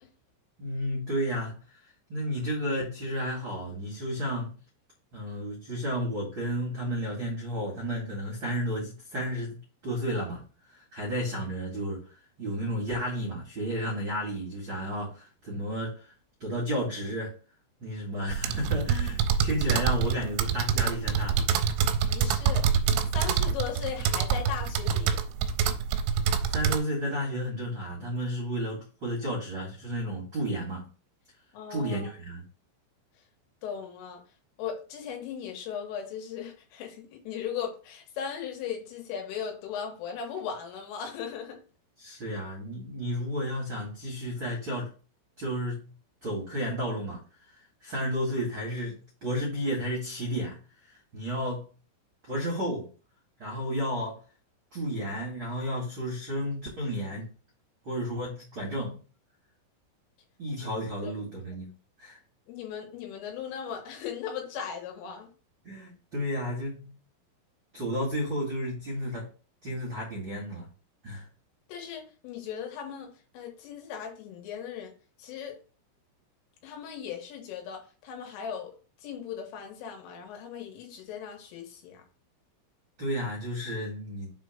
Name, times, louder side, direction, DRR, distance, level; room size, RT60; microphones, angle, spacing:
voice 1, 0.6-4.5 5.1-10.4 10.7-12.0 12.4-16.1 16.4-17.3 17.8-21.5 26.5-30.9 31.7-32.4 42.0-44.9 45.4-45.9 46.2-47.2 47.5-51.7 52.2-52.9 53.4-54.2 54.7-57.3 57.8-59.0 60.4-61.7 62.0-62.2 65.6-67.0 67.7-69.3 69.6-70.7 71.0-71.3 83.0-84.3, equal, 60° right, 1.3 m, -32 dB
sound 1, 18.3-26.8, right 7 dB, 85° right, 3.2 m, -26 dB
voice 2, 22.1-22.7 23.1-25.2 31.5-32.1 33.6-34.2 34.6-41.6 60.6-60.7 61.0-61.1 62.5-65.3 71.7-74.9 75.2-75.6 76.6-82.0, left 8 dB, 80° left, 4.0 m, -38 dB
7.5 x 3.5 x 5.2 m
omnidirectional pair, 5.8 m